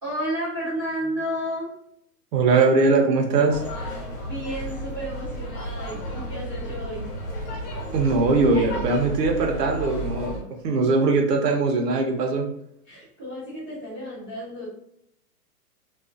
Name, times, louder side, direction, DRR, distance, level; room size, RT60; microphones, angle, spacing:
voice 1, 0.0-1.7 3.8-7.1 12.8-14.7, equal, 15° right, -17 dB, 0.6 m, -32 dB
voice 2, 2.3-3.6 7.9-12.5, right 3 dB, 90° right, 2 dB, 0.8 m, -21 dB
sound 1, 3.5-10.4, equal, 85° left, 1.1 m, -33 dB
2.4 x 2.4 x 2.4 m, 0.72 s
hypercardioid pair, 180°, 47 cm